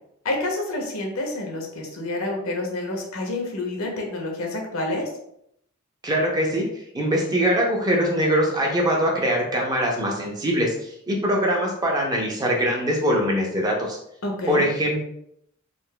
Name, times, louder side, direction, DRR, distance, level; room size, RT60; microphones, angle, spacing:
voice 1, 0.2-5.1 14.2-14.7, left 2 dB, 65° left, 1 dB, 0.7 m, -28 dB
voice 2, 6.0-6.6 6.9-10.7 11.1-14.0 14.5-15.0, equal, 20° right, -1 dB, 0.5 m, -22 dB
3.8 x 2.3 x 2.2 m, 0.74 s
head